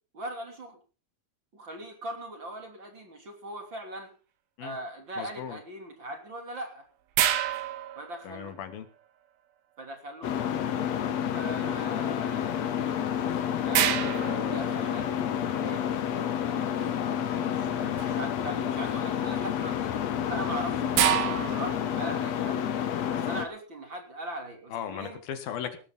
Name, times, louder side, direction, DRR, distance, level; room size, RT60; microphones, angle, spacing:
voice 1, 0.1-0.8 1.5-4.1 4.6-6.9 7.9-8.5 9.8-10.3 11.3-12.7 13.2-13.9 14.5-15.8 16.4-19.9 20.3-22.7 23.1-25.2, right 1 dB, 35° right, 3 dB, 3.4 m, -40 dB
voice 2, 5.2-5.6 8.3-8.9 24.7-25.8, left 9 dB, 75° left, 9 dB, 3.5 m, -37 dB
sound 1, 7.2-8.7 12.9-13.0 13.7-15.3 18.0-18.3 18.8-19.2 20.1-22.0, right 11 dB, 85° right, 3.2 m, -29 dB
sound 2, 10.2-23.5, left 9 dB, 60° left, 2.0 m, -29 dB
19.0 x 12.5 x 3.9 m, 0.35 s
omnidirectional pair, 4.2 m